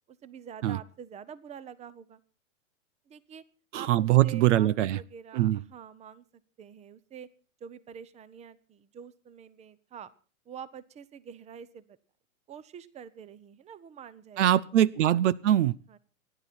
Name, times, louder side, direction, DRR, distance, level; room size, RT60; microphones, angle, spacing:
voice 1, 0.1-2.2 3.1-3.4 3.7-6.2 6.6-7.3 7.6-10.1 10.5-11.8 12.5-14.5 15.9-16.0, right 8 dB, 15° right, 19 dB, 0.9 m, -46 dB
voice 2, 3.7-5.0 5.3-5.6 14.4-15.8, right 13 dB, 60° right, 23 dB, 0.7 m, -23 dB
28.5 x 11.0 x 4.3 m, 0.39 s
hypercardioid pair, 125°, 41 cm